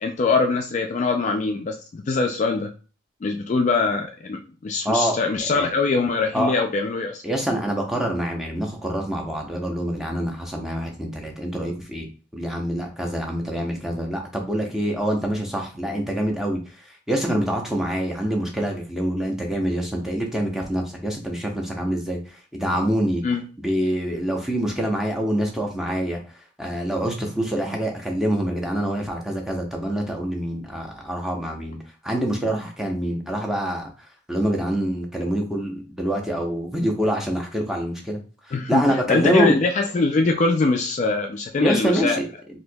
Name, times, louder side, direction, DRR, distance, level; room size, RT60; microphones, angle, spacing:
voice 1, 0.0-2.7 3.2-7.2 23.2-23.4 38.5-42.2, left 3 dB, 35° left, 4 dB, 0.3 m, -23 dB
voice 2, 4.8-5.2 5.4-5.7 6.3-6.5 7.2-12.1 12.3-23.2 23.6-31.8 32.0-33.9 34.3-38.2 38.7-39.6 41.6-42.2, right 1 dB, ahead, 0 dB, 0.7 m, -25 dB
4.3 x 2.6 x 2.2 m, 0.36 s
head